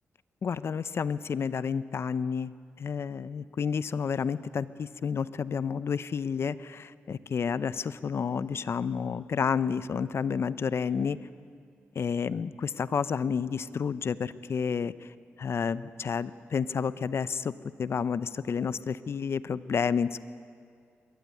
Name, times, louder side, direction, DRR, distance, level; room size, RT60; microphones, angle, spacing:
voice 1, 0.4-2.5 2.8-11.2 11.9-14.9 15.4-17.5 17.8-20.2, left 6 dB, 55° left, 16 dB, 0.6 m, -30 dB
22.5 x 13.5 x 9.4 m, 2.2 s
cardioid pair, 70°, 5 cm